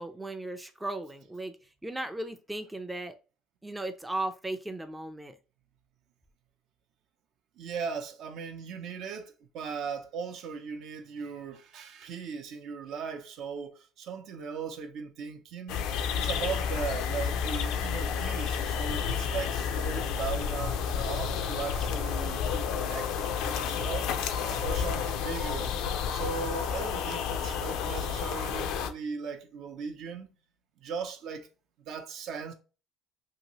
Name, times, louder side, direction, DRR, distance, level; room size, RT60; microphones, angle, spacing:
voice 1, 0.0-1.6 1.8-3.1 3.6-5.4, right 2 dB, 10° right, 0.4 m, -36 dB
voice 2, 7.6-15.8 16.1-24.1 24.6-25.7 26.1-30.3 30.8-31.5 31.8-32.5, right 6 dB, 65° right, 0.5 m, -38 dB
sound 1, 15.7-28.9, left 7 dB, 75° left, 0.4 m, -31 dB
2.8 x 2.6 x 2.9 m
supercardioid pair, 100°, 0 cm